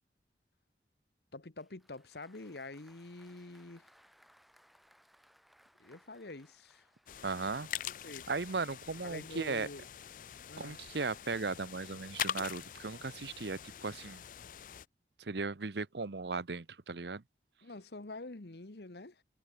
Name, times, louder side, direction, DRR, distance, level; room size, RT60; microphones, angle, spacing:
voice 1, 1.3-3.9 5.8-6.9 8.0-8.3 9.0-9.8 10.5-10.8 17.6-19.2, left 2 dB, 70° left, 1.2 m, -47 dB
Applause, 1.6-7.9, equal, ahead, 3.8 m, -66 dB
sound 1, 7.1-14.8, left 10 dB, 45° left, 0.4 m, -43 dB
voice 2, 7.2-7.7 8.3-9.7 10.6-14.2 15.2-17.2, right 4 dB, 75° right, 0.9 m, -37 dB
head